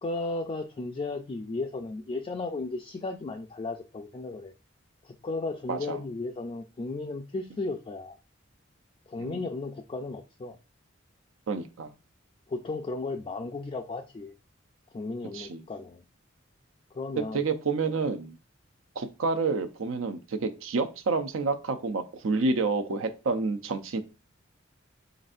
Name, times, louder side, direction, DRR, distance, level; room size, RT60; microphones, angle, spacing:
voice 1, 0.0-4.5 5.0-8.2 9.1-10.6 12.5-14.3 14.9-16.0 16.9-17.4, left 3 dB, 30° left, 3 dB, 0.3 m, -35 dB
voice 2, 11.5-11.9 15.3-15.6 17.3-18.4 19.0-24.0, right 4 dB, 85° right, 8 dB, 0.5 m, -29 dB
4.3 x 3.9 x 2.4 m, 0.30 s
head